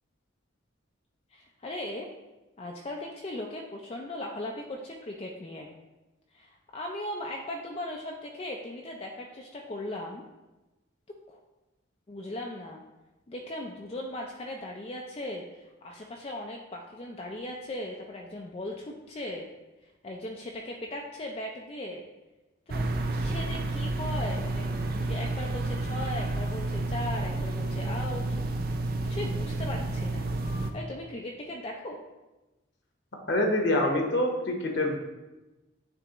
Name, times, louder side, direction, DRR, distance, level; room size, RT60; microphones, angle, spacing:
voice 1, 1.3-2.1 2.6-5.7 6.3-10.2 11.3-11.4 12.1-12.8 13.3-19.4 20.0-22.0 22.7-22.8 23.1-24.6 25.0-28.2 29.0-30.3 30.7-32.0, left 1 dB, 30° left, 0 dB, 0.4 m, -38 dB
sound 1, 22.7-30.7, right 2 dB, 45° right, 0.5 m, -30 dB
voice 2, 33.3-35.0, left 1 dB, 60° left, 2 dB, 1.0 m, -25 dB
10.0 x 3.4 x 3.0 m, 1.1 s
head